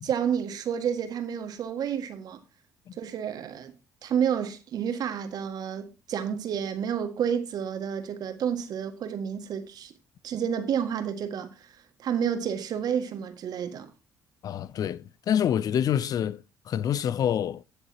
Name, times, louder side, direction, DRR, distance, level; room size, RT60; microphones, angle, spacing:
voice 1, 0.0-2.4 3.0-3.7 4.0-9.9 10.2-11.7 12.0-13.9, right 8 dB, 55° right, 1.8 m, -30 dB
voice 2, 14.4-17.6, left 9 dB, 50° left, 0.6 m, -27 dB
16.0 x 6.7 x 2.9 m
hypercardioid pair, 50°, 8 cm